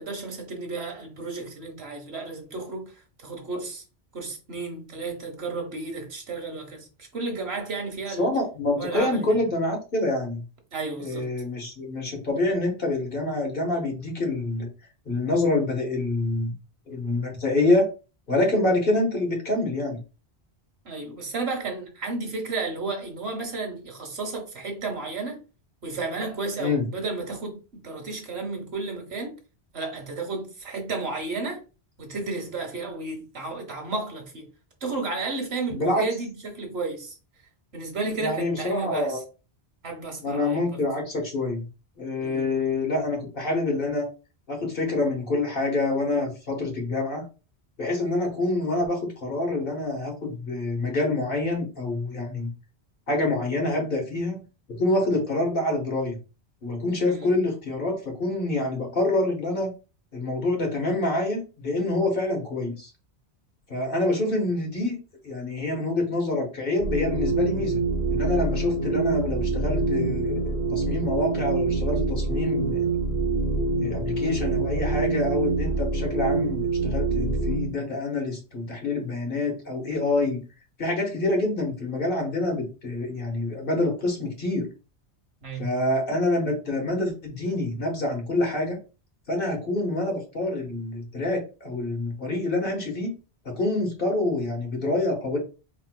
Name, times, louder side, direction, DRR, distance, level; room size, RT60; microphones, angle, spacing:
voice 1, 0.0-3.8 4.1-8.3 8.8-9.4 10.7-11.3 20.8-25.4 25.8-29.3 29.7-31.6 32.0-34.4 34.8-37.2 37.7-39.1 39.8-40.6 42.2-42.5 57.1-57.3 85.4-85.8, right 3 dB, 75° right, 1.4 m, -33 dB
voice 2, 8.2-10.4 11.0-14.7 15.0-16.5 16.9-17.9 18.3-20.0 26.6-26.9 35.7-36.0 38.2-39.2 40.2-41.6 42.0-44.1 44.5-47.2 47.8-52.5 53.1-54.4 54.7-56.2 56.6-59.7 60.1-62.9 63.7-65.0 65.2-67.8 68.1-72.9 73.8-80.4 80.8-84.7 85.6-88.8 89.3-93.1 93.4-95.4, left 2 dB, 55° left, 1.6 m, -26 dB
sound 1, 66.8-77.7, right 3 dB, 55° right, 1.1 m, -26 dB
4.5 x 3.5 x 2.2 m
omnidirectional pair, 1.1 m